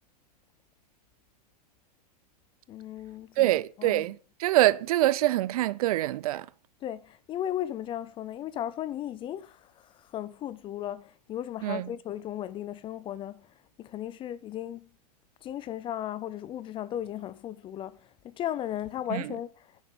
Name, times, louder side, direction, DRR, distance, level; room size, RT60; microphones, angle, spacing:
voice 1, 2.7-4.1 6.8-14.9 15.4-19.8, left 11 dB, 25° left, 0.5 m, -36 dB
voice 2, 3.4-6.5 11.6-11.9 19.1-19.2, right 15 dB, 60° right, 0.5 m, -25 dB
9.6 x 5.8 x 5.2 m
hypercardioid pair, 115°, 21 cm